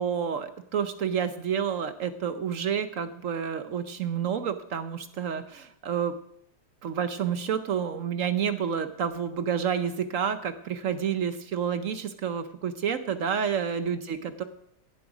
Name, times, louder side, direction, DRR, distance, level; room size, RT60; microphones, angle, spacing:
voice 1, 0.0-6.1 6.8-14.4, right 7 dB, 60° right, 10 dB, 0.9 m, -29 dB
16.0 x 7.8 x 4.9 m, 0.74 s
omnidirectional pair, 1.9 m